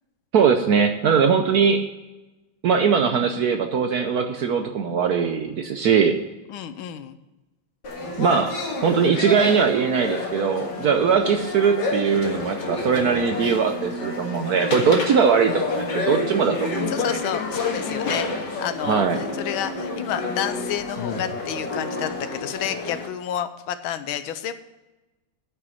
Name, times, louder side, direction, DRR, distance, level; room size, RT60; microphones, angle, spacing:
voice 1, 0.3-1.8 2.6-6.2 8.2-8.6 8.8-16.9 18.8-19.2, right 6 dB, 65° right, 6 dB, 1.0 m, -20 dB
voice 2, 6.5-7.2 16.9-24.5, left 10 dB, 80° left, 11 dB, 1.5 m, -30 dB
sound 1, 7.8-23.1, left 3 dB, 55° left, 2.2 m, -29 dB
9.4 x 6.0 x 8.0 m, 1.1 s
omnidirectional pair, 2.3 m